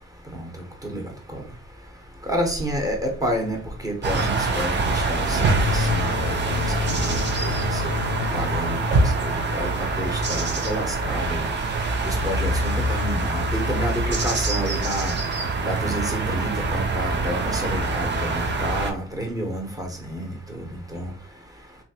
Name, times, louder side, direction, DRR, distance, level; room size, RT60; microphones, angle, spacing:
voice 1, 2.3-7.9 8.3-8.8 9.2-11.5 12.0-15.1 15.6-20.3 20.7-21.1, equal, 10° right, 1 dB, 1.0 m, -29 dB
sound 1, 4.0-18.9, right 3 dB, 35° right, 0.7 m, -24 dB
sound 2, 5.4-10.8, left 7 dB, 65° left, 0.5 m, -31 dB
3.0 x 2.5 x 2.8 m, 0.42 s
cardioid pair, 90°, 30 cm